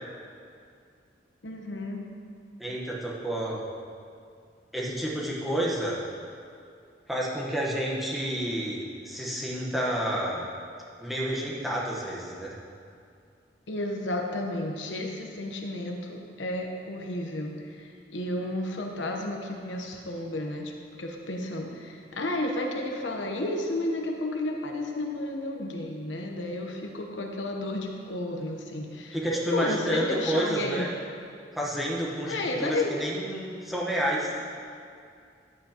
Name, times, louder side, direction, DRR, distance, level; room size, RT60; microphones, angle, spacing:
voice 1, 1.4-2.1 13.7-20.7 21.0-30.9 32.3-33.0, left 1 dB, 85° left, 1 dB, 1.0 m, -32 dB
voice 2, 2.6-3.6 4.7-6.0 7.1-10.5 11.0-12.5 29.1-30.9 31.5-34.3, right 1 dB, ahead, -5 dB, 1.1 m, -30 dB
11.5 x 8.1 x 2.9 m, 2.3 s
head